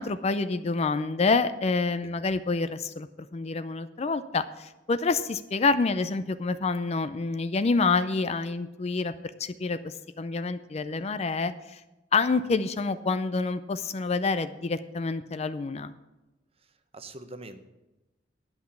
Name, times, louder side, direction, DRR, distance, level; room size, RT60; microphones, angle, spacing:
voice 1, 0.0-3.1 3.3-9.1 9.4-11.8 12.1-15.9, left 4 dB, 35° left, 11 dB, 0.4 m, -27 dB
voice 2, 16.6-17.6, right 2 dB, 30° right, 9 dB, 0.8 m, -44 dB
11.0 x 5.9 x 8.4 m, 1.0 s
head